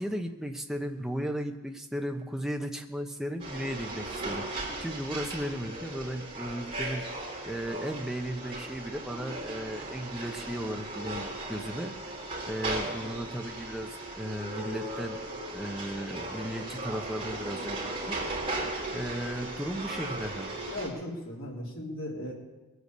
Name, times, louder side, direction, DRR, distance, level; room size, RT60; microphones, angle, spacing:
voice 1, 0.0-7.0 7.5-11.9 12.5-15.2 15.5-18.2 18.9-20.6, equal, ahead, 3 dB, 0.9 m, -35 dB
sound 1, 3.4-20.9, right 2 dB, 25° right, 3.6 m, -37 dB
voice 2, 20.7-22.3, left 1 dB, 75° left, -2 dB, 3.7 m, -37 dB
21.5 x 8.2 x 6.8 m, 1.2 s
head